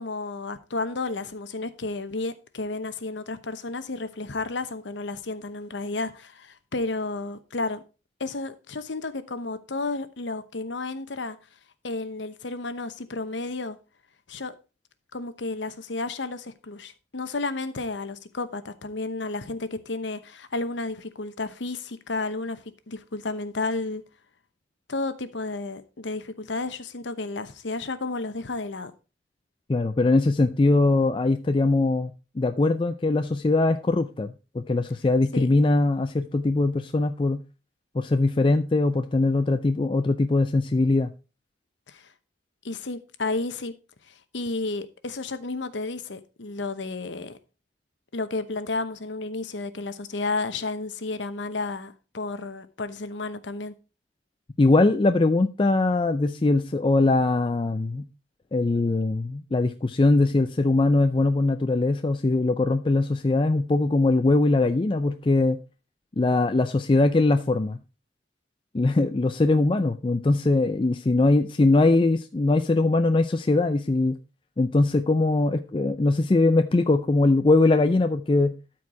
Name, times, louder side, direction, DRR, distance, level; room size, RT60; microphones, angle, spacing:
voice 1, 0.0-7.8 8.2-11.4 11.8-13.8 14.3-14.5 15.1-24.0 24.9-28.9 35.3-35.5 41.9-42.0 42.6-43.8 44.1-47.4 48.1-53.7, left 3 dB, 80° left, 0.9 m, -32 dB
voice 2, 29.7-37.4 37.9-41.1 54.6-58.1 58.5-65.6 66.2-67.8 68.7-74.2 74.6-78.5, left 2 dB, 30° left, 0.4 m, -21 dB
12.5 x 4.7 x 4.7 m
head